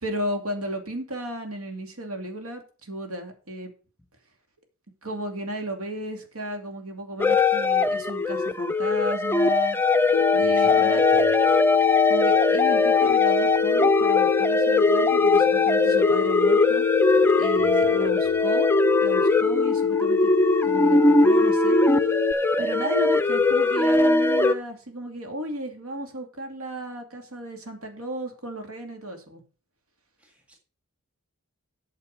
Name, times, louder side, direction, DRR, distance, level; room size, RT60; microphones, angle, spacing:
voice 1, 0.0-3.7 5.0-9.8 10.3-11.0 12.1-16.9 17.4-18.7 19.0-20.3 20.6-21.8 22.6-29.4, right 1 dB, 75° right, 4 dB, 2.6 m, -34 dB
sound 1, 7.2-24.5, left 3 dB, 10° left, 0.5 m, -21 dB
Telephone, 10.1-22.3, left 7 dB, 80° left, 0.5 m, -25 dB
voice 2, 10.4-11.3 17.5-18.1 30.2-30.6, left 1 dB, 5° right, 2 dB, 1.8 m, -40 dB
8.7 x 6.6 x 6.6 m, 0.36 s
head